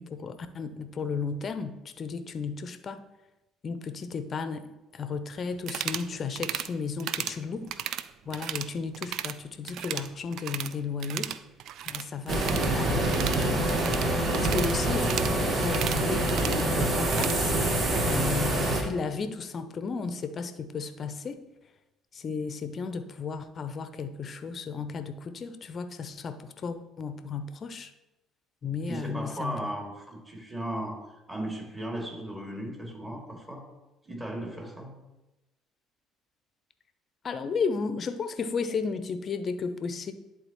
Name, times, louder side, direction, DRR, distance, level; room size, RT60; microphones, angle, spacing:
voice 1, 0.0-3.0 3.6-7.7 8.3-11.3 11.9-13.8 14.3-15.1 15.5-17.5 18.1-21.4 22.1-27.9 28.6-29.7 37.2-40.1, left 5 dB, 45° left, 10 dB, 0.6 m, -34 dB
sound 1, 5.6-6.1 6.4-6.7 7.0-7.4 7.7-8.7 8.9-9.4 9.6-10.7 11.0-17.4, right 10 dB, 65° right, 0.3 m, -35 dB
sound 2, 12.3-18.8, right 1 dB, 40° right, 1.2 m, -26 dB
voice 2, 28.8-33.6 34.1-35.0, right 1 dB, 15° right, -1 dB, 2.4 m, -36 dB
10.5 x 3.9 x 3.0 m, 0.99 s
hypercardioid pair, 60°, 0 cm